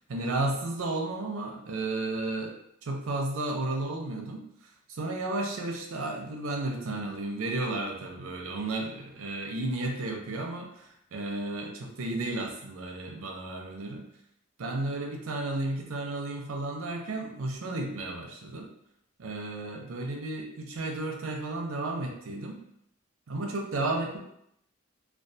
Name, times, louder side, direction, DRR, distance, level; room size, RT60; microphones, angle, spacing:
voice 1, 0.1-2.5 2.8-4.5 4.9-14.1 14.6-18.7 19.2-22.6 23.3-24.2, right 2 dB, 80° right, 1 dB, 0.5 m, -33 dB
2.3 x 2.3 x 2.6 m, 0.74 s
head